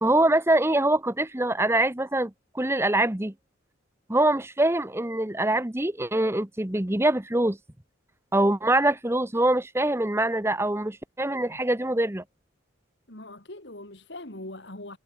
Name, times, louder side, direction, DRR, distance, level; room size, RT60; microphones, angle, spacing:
voice 1, 0.0-3.3 4.1-7.6 8.3-12.2, right 1 dB, 15° right, 0.9 m, -24 dB
voice 2, 13.1-15.0, left 1 dB, 60° left, 3.3 m, -41 dB
head